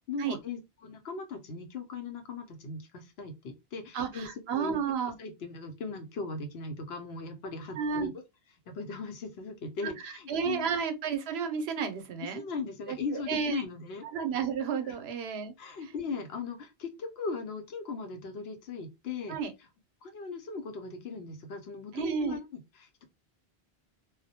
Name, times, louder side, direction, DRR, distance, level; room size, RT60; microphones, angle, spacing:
voice 1, 0.1-4.8 5.2-8.1 8.7-10.7 12.2-14.1 14.8-15.0 15.6-19.4 20.0-22.4 22.7-23.0, left 4 dB, 80° left, 0.9 m, -38 dB
voice 2, 3.9-5.1 7.8-8.1 9.8-12.4 12.9-13.0 13.3-13.6 14.1-15.5 19.3-19.5 21.9-22.4, right 6 dB, 85° right, 0.8 m, -32 dB
2.3 x 2.0 x 2.7 m
omnidirectional pair, 1.0 m